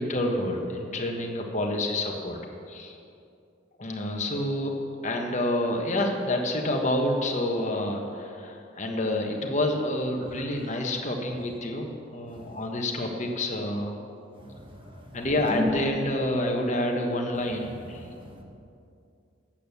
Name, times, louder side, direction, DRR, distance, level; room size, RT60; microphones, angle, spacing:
voice 1, 0.0-2.4 2.7-3.0 3.8-4.7 5.0-14.0 15.1-18.1, left 1 dB, 40° left, 2 dB, 1.3 m, -28 dB
voice 2, 14.4-15.2 15.5-15.7 17.9-18.4, left 1 dB, 25° right, 1 dB, 1.4 m, -35 dB
8.7 x 8.6 x 7.0 m, 2.5 s
head